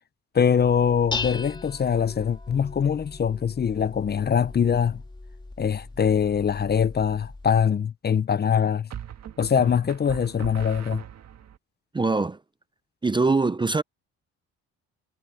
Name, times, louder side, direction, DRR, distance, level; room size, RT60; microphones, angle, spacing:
voice 1, 0.3-5.0 5.6-8.9 9.4-11.0, left 7 dB, 35° left, 0.6 m, -23 dB
Dishes pots and pans, 0.6-7.7, left 3 dB, 15° left, 3.1 m, -38 dB
sound 1, 6.2-6.7 8.9-11.6, right 9 dB, 60° right, 1.8 m, -40 dB
voice 2, 11.9-12.4 13.0-13.8, right 3 dB, 15° right, 0.5 m, -22 dB
cardioid pair, 90°, 30 cm